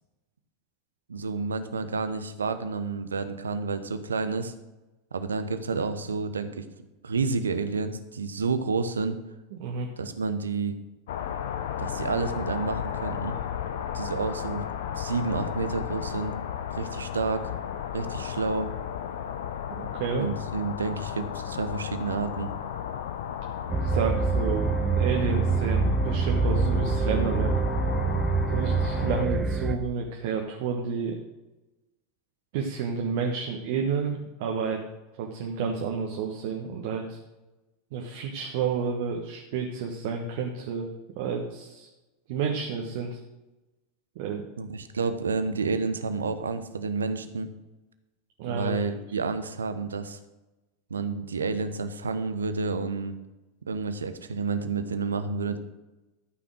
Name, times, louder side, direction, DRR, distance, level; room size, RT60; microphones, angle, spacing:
voice 1, 1.1-4.5 5.1-6.6 7.0-9.2 10.0-10.8 11.8-13.4 13.9-14.6 15.0-16.4 16.7-17.5 17.9-18.7 20.2-22.5 44.6-47.5 48.5-50.2 50.9-53.2 53.7-55.6, right 4 dB, 75° right, 10 dB, 0.9 m, -30 dB
voice 2, 9.5-9.9 19.7-20.3 23.8-24.7 25.0-27.6 28.5-31.2 32.5-34.8 35.2-37.2 37.9-40.9 41.2-41.9 42.3-43.2 44.1-44.4 48.4-48.7, right 6 dB, 55° right, 1 dB, 1.3 m, -30 dB
sound 1, 11.1-29.2, left 9 dB, 60° left, 1.0 m, -34 dB
sound 2, 23.7-29.8, right 3 dB, 15° right, 1.0 m, -25 dB
13.0 x 5.9 x 6.4 m, 1.0 s
figure-of-eight pair, 85°, 0 cm